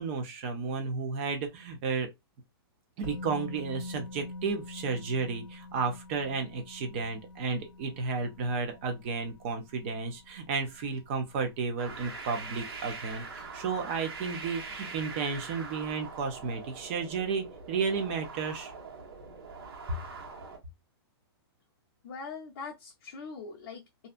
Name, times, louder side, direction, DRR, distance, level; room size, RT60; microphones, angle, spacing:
voice 1, 0.0-2.1 3.0-18.7, right 5 dB, 25° right, 0.6 m, -33 dB
Musical instrument, 3.0-10.9 11.2-11.4, left 2 dB, 45° right, 1.3 m, -45 dB
sound 1, 11.8-20.6, right 4 dB, 80° right, 1.3 m, -43 dB
voice 2, 22.0-24.1, left 5 dB, 45° left, 0.7 m, -42 dB
2.7 x 2.2 x 2.4 m
hypercardioid pair, 170°, 13 cm